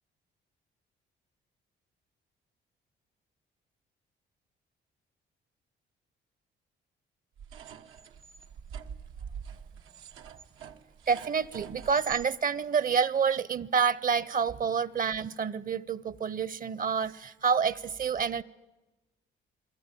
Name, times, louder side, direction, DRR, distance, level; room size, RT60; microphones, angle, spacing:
sound 1, 7.4-12.3, right 7 dB, 90° right, 1.3 m, -45 dB
voice 1, 11.1-18.4, right 6 dB, 45° right, 21 dB, 0.8 m, -28 dB
28.0 x 20.5 x 9.9 m, 1.1 s
cardioid pair, 90°, 20 cm